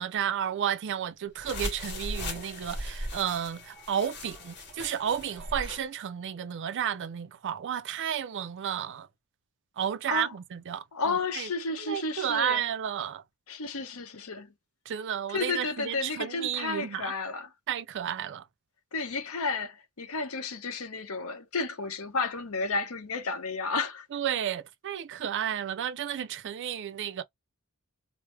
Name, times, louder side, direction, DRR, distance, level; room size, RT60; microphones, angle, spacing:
voice 1, 0.0-9.1 9.8-11.5 11.8-13.2 14.9-17.1 17.7-18.5 24.1-27.2, right 9 dB, 55° right, 0.4 m, -32 dB
sound 1, 1.4-5.9, left 1 dB, 50° left, 2.1 m, -38 dB
voice 2, 10.9-12.6 13.5-14.5 15.3-17.5 18.9-24.1, left 4 dB, 70° left, 0.9 m, -32 dB
4.7 x 2.0 x 3.2 m
head